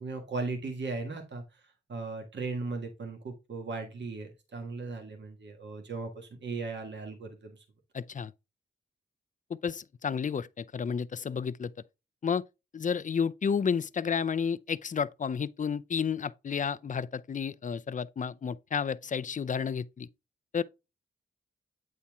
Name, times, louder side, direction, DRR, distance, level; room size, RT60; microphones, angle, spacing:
voice 1, 0.0-7.6, right 3 dB, 60° right, 1.6 m, -37 dB
voice 2, 7.9-8.3 9.6-11.7 12.2-12.4 12.7-20.1 20.5-20.6, left 6 dB, 40° left, 0.5 m, -31 dB
8.7 x 4.3 x 3.5 m
cardioid pair, 85°, 21 cm